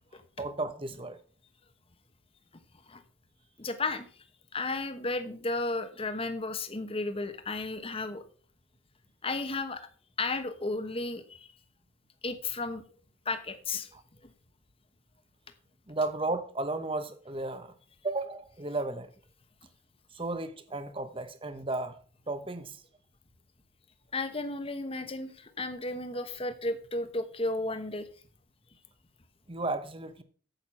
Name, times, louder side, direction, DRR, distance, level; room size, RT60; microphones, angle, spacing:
voice 1, 0.4-1.2 13.9-14.0 15.9-17.7 18.0-19.1 20.1-22.0 22.3-22.8 29.5-30.2, right 2 dB, 25° right, 1.0 m, -34 dB
voice 2, 3.6-4.1 4.5-8.2 9.2-9.9 10.2-11.5 12.2-12.8 13.2-13.9 14.2-14.3 24.1-28.1, left 2 dB, 30° left, 1.1 m, -33 dB
9.1 x 8.0 x 5.6 m
head